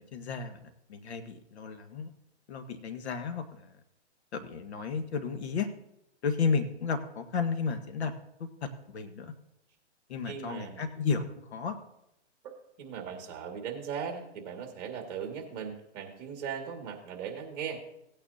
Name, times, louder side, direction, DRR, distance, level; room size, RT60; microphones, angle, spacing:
voice 1, 0.0-2.1 2.5-3.8 4.3-5.7 6.2-8.1 8.6-9.3 10.1-11.8, left 5 dB, 65° left, 7 dB, 1.5 m, -33 dB
voice 2, 10.2-10.8 12.4-17.8, right 7 dB, 35° right, 3 dB, 2.2 m, -38 dB
17.5 x 9.0 x 2.8 m, 0.82 s
hypercardioid pair, 150°, 35 cm